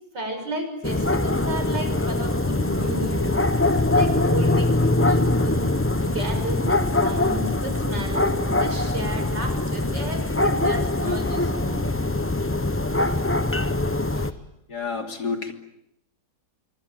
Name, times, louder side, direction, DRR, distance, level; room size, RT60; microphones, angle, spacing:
voice 1, 0.1-5.7 6.0-11.8 13.0-13.1 13.5-13.7 14.1-14.3, right 1 dB, 70° right, 6 dB, 6.8 m, -33 dB
sound 1, 0.8-14.3, left 2 dB, 15° left, 0.5 m, -23 dB
voice 2, 14.7-15.5, left 5 dB, 60° left, 5 dB, 3.5 m, -29 dB
27.0 x 24.5 x 8.9 m, 0.81 s
omnidirectional pair, 2.0 m